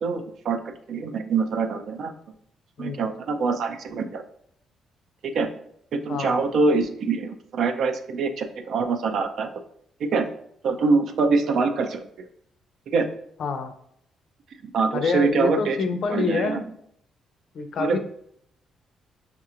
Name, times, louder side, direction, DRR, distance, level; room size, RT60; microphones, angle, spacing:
voice 1, 0.0-2.1 2.8-4.2 5.3-5.5 5.9-9.5 10.0-10.3 10.6-12.3 12.9-13.1 14.7-15.8 16.1-16.6 17.8-18.0, right 4 dB, 70° right, 7 dB, 0.5 m, -24 dB
voice 2, 6.1-6.4 13.4-13.7 14.9-16.7 17.5-18.0, left 4 dB, 60° left, 7 dB, 0.5 m, -27 dB
5.5 x 2.9 x 2.4 m, 0.68 s
cardioid pair, 90°, 0 cm